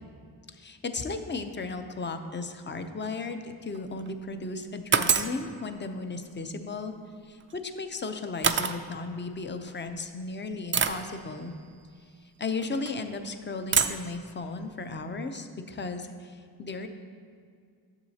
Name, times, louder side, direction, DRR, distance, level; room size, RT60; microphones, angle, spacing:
voice 1, 0.5-6.9 7.2-11.5 12.4-16.9, left 3 dB, 25° left, 7 dB, 0.6 m, -35 dB
sound 1, 3.7-4.1 4.9-5.4 7.4-7.6 8.4-8.8 9.7-9.8 10.7-11.1 12.6-12.9 13.7-14.1, right 6 dB, 30° right, 0.4 m, -25 dB
12.0 x 7.1 x 2.8 m, 2.2 s
wide cardioid pair, 75°, 43 cm